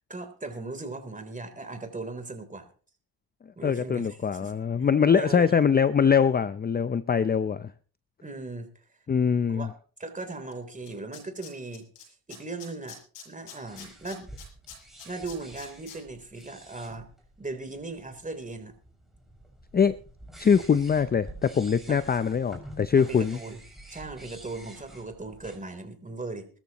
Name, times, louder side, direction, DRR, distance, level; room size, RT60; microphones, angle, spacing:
voice 1, 0.1-2.7 3.6-4.5 5.1-5.6 8.2-8.8 9.5-9.7 10.0-11.9 12.3-13.0 13.3-14.3 15.1-17.1 17.4-18.7 21.9-22.0 22.9-23.6 23.9-26.5, right 3 dB, 20° right, 3.5 m, -38 dB
voice 2, 3.6-7.7 9.1-9.7 19.7-20.0 20.4-23.4, left 6 dB, 25° left, 0.5 m, -23 dB
Tools, 10.5-10.6 10.9-12.0 12.3-16.0 16.3-16.4, left 7 dB, 80° left, 7.4 m, -45 dB
sound 1, 13.7-25.6, right 1 dB, ahead, 6.1 m, -49 dB
21.0 x 13.5 x 3.0 m
cardioid pair, 85°, 42 cm